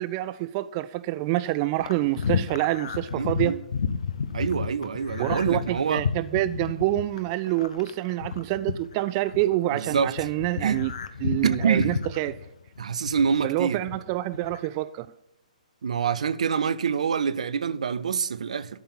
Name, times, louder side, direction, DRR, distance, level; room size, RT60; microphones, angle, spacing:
voice 1, 0.0-3.6 5.2-10.9 11.2-12.4 13.4-15.1, right 16 dB, 30° right, 0.3 m, -27 dB
sound 1, 1.8-9.5 9.9-13.4 13.8-14.7, left 6 dB, 60° left, 0.8 m, -31 dB
voice 2, 3.1-3.6 4.3-6.0 9.7-10.3 10.6-10.8 11.4-12.0 12.8-13.9 15.8-18.8, right 6 dB, 60° right, 0.6 m, -26 dB
13.0 x 5.5 x 8.6 m
figure-of-eight pair, 125°, 4 cm